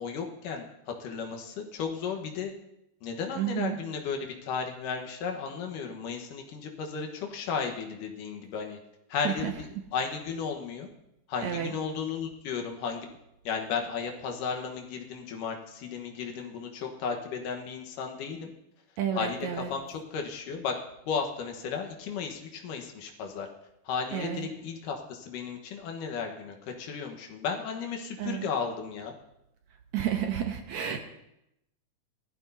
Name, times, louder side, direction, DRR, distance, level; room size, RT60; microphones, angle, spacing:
voice 1, 0.0-2.5 3.0-8.8 9.1-10.9 11.3-13.1 13.4-18.5 19.2-20.7 21.1-23.5 23.9-29.1, left 6 dB, 90° left, 3 dB, 2.9 m, -34 dB
voice 2, 3.4-3.8 9.2-9.5 11.4-11.7 19.0-19.7 24.1-24.5 28.2-28.5 29.9-31.2, right 9 dB, 70° right, 4 dB, 2.0 m, -31 dB
19.5 x 13.5 x 2.8 m, 0.83 s
omnidirectional pair, 3.7 m